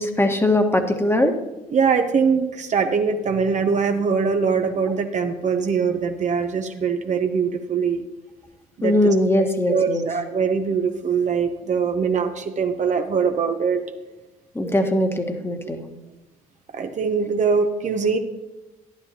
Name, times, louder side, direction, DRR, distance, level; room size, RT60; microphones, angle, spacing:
voice 1, 0.0-1.4 8.8-10.0 14.5-15.8, left 1 dB, 15° left, 5 dB, 1.5 m, -20 dB
voice 2, 1.7-8.0 8.8-9.1 9.7-13.8 16.7-18.2, right 5 dB, 45° right, 6 dB, 0.9 m, -22 dB
12.5 x 10.5 x 2.9 m, 1.1 s
hypercardioid pair, 55°, 17 cm